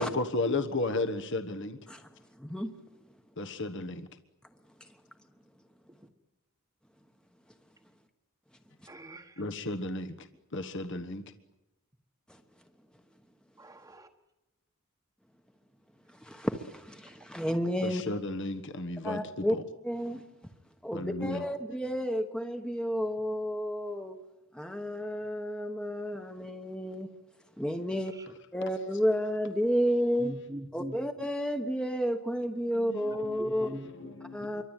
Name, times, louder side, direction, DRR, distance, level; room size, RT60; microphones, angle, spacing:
voice 1, 0.0-1.8 3.4-4.1 9.4-11.2 17.8-19.6 20.9-21.4 32.7-34.6, left 2 dB, 55° left, 1.3 m, -34 dB
voice 2, 2.4-2.7 4.8-5.0 12.3-12.4 16.1-18.0 19.0-19.6 19.8-20.2 20.8-24.2 24.5-27.1 27.6-28.1 28.5-30.3 30.7-33.8 34.3-34.6, equal, 5° left, 1.2 m, -31 dB
voice 3, 8.9-9.4 13.6-14.1 17.5-17.6 27.9-28.2 30.2-31.0 33.4-34.1, right 1 dB, 15° right, 1.3 m, -43 dB
27.0 x 24.0 x 9.1 m
head